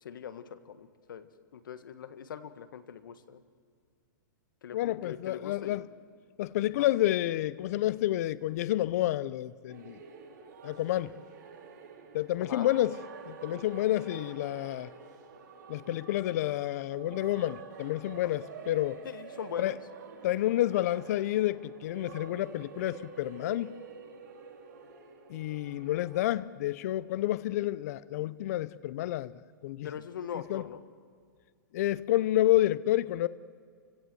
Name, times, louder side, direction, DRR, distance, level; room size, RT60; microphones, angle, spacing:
voice 1, 0.0-3.4 4.6-5.8 6.8-6.9 12.4-12.7 18.2-18.3 19.0-19.8 29.8-30.8, left 8 dB, 80° left, 1.6 m, -41 dB
voice 2, 4.7-5.9 6.4-10.0 10.6-11.1 12.1-13.0 13.3-14.9 15.7-19.0 19.6-19.7 20.2-23.7 25.3-29.3 29.6-29.9 30.5-30.6 31.7-33.3, left 14 dB, 50° left, 0.6 m, -29 dB
sound 1, 9.7-26.3, right 6 dB, 60° right, 3.2 m, -48 dB
29.0 x 16.5 x 7.8 m
hypercardioid pair, 160°, 11 cm